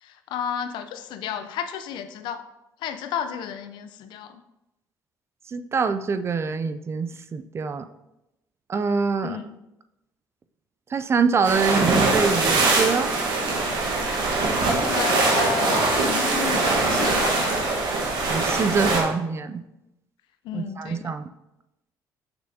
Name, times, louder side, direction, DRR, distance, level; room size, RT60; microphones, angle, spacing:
voice 1, 0.0-2.4 2.8-4.4 9.2-9.6 14.6-17.8 20.4-21.1, left 8 dB, 75° left, 9 dB, 0.5 m, -32 dB
voice 2, 5.5-7.9 8.7-9.4 10.9-13.1 18.3-19.6 20.5-21.3, right 5 dB, 35° right, 11 dB, 0.4 m, -25 dB
sound 1, 11.4-19.0, right 3 dB, 75° right, 1.3 m, -22 dB
6.2 x 6.1 x 2.7 m, 0.92 s
supercardioid pair, 85°, 8 cm